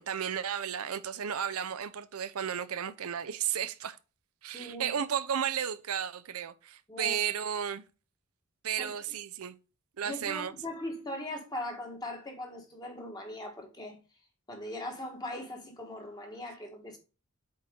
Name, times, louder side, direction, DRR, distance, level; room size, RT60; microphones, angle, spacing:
voice 1, 0.0-4.0 4.4-7.8 8.6-9.6 10.0-10.5, right 8 dB, 85° right, 0.5 m, -33 dB
voice 2, 4.5-5.0 6.9-7.2 8.8-8.9 10.0-14.0 14.5-17.0, left 1 dB, 20° left, 1.6 m, -40 dB
7.7 x 4.3 x 3.7 m
head